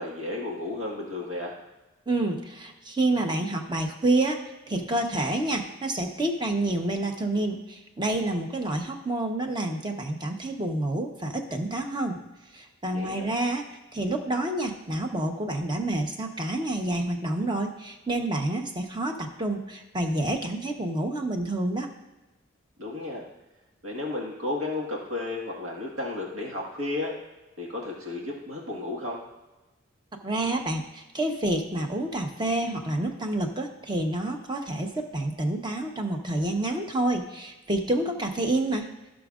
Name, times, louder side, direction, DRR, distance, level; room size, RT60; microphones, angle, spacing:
voice 1, 0.0-1.5 12.9-13.3 22.8-23.2 23.8-27.1 27.6-29.2, left 2 dB, 85° right, -2 dB, 1.7 m, -33 dB
voice 2, 2.1-4.4 4.7-12.2 12.5-13.7 13.9-21.9 30.2-38.9, right 2 dB, 20° right, 3 dB, 0.9 m, -28 dB
16.0 x 6.2 x 2.5 m, 1.1 s
head